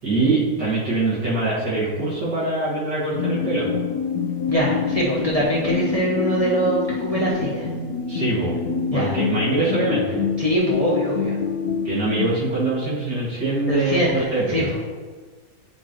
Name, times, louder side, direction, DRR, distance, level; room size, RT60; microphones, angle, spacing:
voice 1, 0.0-3.8 8.0-8.6 8.9-10.3 11.8-14.7, right 2 dB, 55° right, -9 dB, 2.4 m, -23 dB
sound 1, 3.1-12.3, left 5 dB, 80° left, 0.8 m, -26 dB
voice 2, 4.5-7.7 8.9-9.1 10.4-11.4 13.7-14.8, equal, 45° left, -6 dB, 0.4 m, -23 dB
8.9 x 4.3 x 3.1 m, 1.4 s
omnidirectional pair, 2.3 m